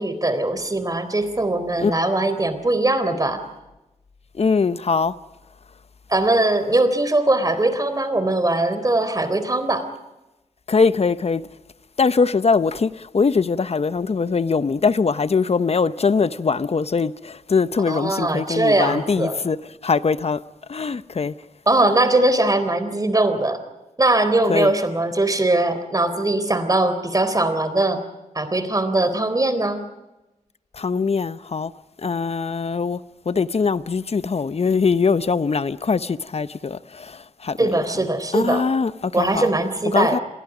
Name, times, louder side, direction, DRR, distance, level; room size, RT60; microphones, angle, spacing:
voice 1, 0.0-3.4 6.1-9.8 17.9-19.4 21.7-23.6 24.0-28.0 28.4-29.8 37.6-38.6 39.1-40.2, right 2 dB, 30° right, 3.8 m, -21 dB
voice 2, 4.3-5.1 10.7-11.5 12.0-19.6 19.8-20.4 20.7-21.3 24.5-24.7 30.7-31.7 32.0-33.0 33.3-37.8 38.3-39.5 39.9-40.2, left 5 dB, 55° left, 0.9 m, -22 dB
30.0 x 22.5 x 5.1 m
wide cardioid pair, 80°, 13 cm